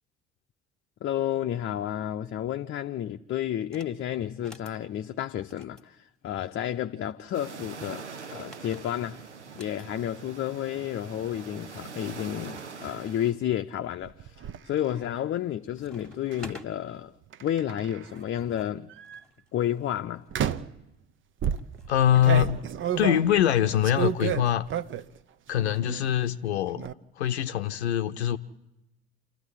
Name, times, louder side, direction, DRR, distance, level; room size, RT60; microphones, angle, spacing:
voice 1, 1.0-9.2 9.5-14.4 14.6-17.1 17.4-18.9 19.5-20.3, left 11 dB, 35° left, 0.7 m, -31 dB
sound 1, 3.6-4.0 4.3-4.8 5.4-6.8 7.6-9.9 11.0-11.1 11.3-11.4 12.0-12.7 13.3-13.8 14.4-14.7 15.0-15.5 15.8-16.7 17.7-20.6 21.6-22.7, left 1 dB, ahead, 1.8 m, -51 dB
sound 2, 7.3-13.3, right 5 dB, 85° right, 0.8 m, -43 dB
sound 3, 14.0-14.6 16.3-16.6 17.3-18.2 18.9-19.2 20.3-20.8 21.4-25.2 25.5-26.1 26.3-26.9, right 9 dB, 35° right, 0.8 m, -31 dB
voice 2, 21.9-22.6 23.0-24.7 25.5-26.9 27.2-28.4, left 11 dB, 75° left, 0.8 m, -23 dB
27.5 x 13.5 x 9.9 m
figure-of-eight pair, 55°, 33 cm